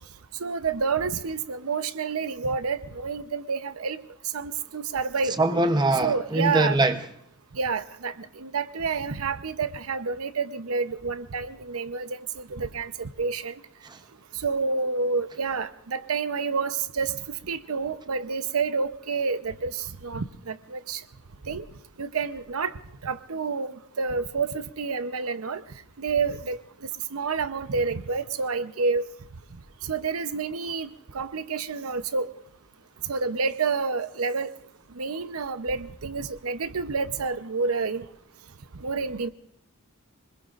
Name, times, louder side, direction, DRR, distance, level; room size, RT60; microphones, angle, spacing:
voice 1, 0.4-4.0 4.3-5.4 6.0-6.8 7.5-13.6 14.4-17.1 17.5-21.0 21.5-21.7 22.0-22.7 23.0-25.6 26.0-26.6 27.1-29.0 29.8-30.9 31.1-32.3 33.0-34.5 35.0-38.0 38.8-39.3, right 4 dB, 85° right, 0.8 m, -29 dB
voice 2, 5.4-7.0 13.9-14.0, right 2 dB, 20° right, 0.8 m, -22 dB
25.5 x 21.0 x 2.5 m
head